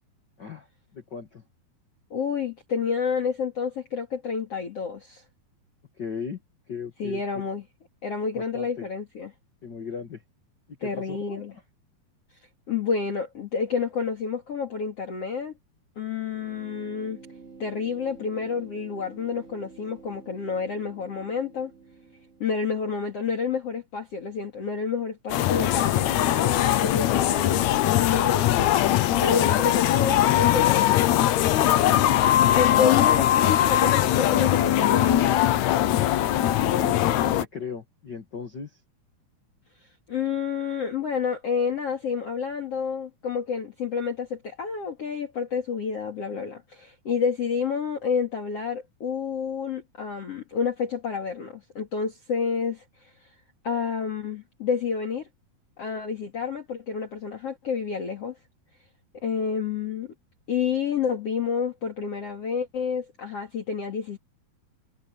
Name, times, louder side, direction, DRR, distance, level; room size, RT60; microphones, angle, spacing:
voice 1, 0.9-1.4 6.0-6.4 6.7-7.5 8.3-8.9 9.6-10.2 10.7-11.6 36.6-38.8, left 5 dB, 70° left, 1.0 m, -37 dB
voice 2, 2.1-5.2 7.0-7.6 8.0-9.3 10.8-11.5 12.7-15.5 16.0-17.2 17.6-21.7 22.4-27.6 28.0-31.0 31.9-35.4 40.1-52.8 53.6-55.3 55.8-58.4 59.2-60.1 60.5-64.2, left 6 dB, 45° left, 2.9 m, -29 dB
sound 1, 16.3-23.0, right 4 dB, 15° right, 3.6 m, -49 dB
sound 2, 25.3-37.4, left 12 dB, 90° left, 1.6 m, -21 dB
omnidirectional pair, 4.5 m